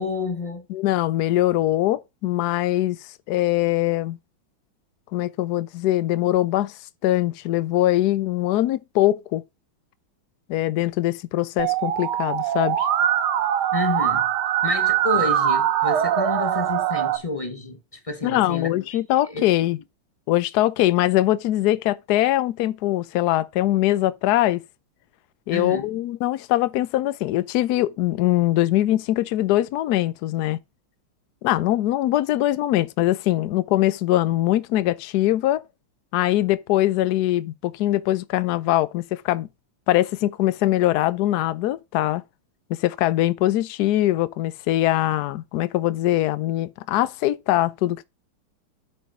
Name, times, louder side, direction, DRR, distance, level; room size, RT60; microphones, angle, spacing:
voice 1, 0.0-0.7 13.7-14.3 14.6-17.8 18.0-18.7 19.3-19.4 25.5-25.9, left 3 dB, 30° left, 0.6 m, -29 dB
voice 2, 0.7-3.0 3.3-4.2 5.1-6.7 7.0-9.4 10.5-12.8 18.2-19.8 20.3-24.6 25.5-30.6 31.4-35.6 36.1-39.5 39.9-42.2 42.8-48.1, left 15 dB, 70° left, 0.9 m, -22 dB
Musical instrument, 11.6-17.2, right 10 dB, 85° right, 1.9 m, -22 dB
8.3 x 5.8 x 5.0 m
omnidirectional pair, 2.3 m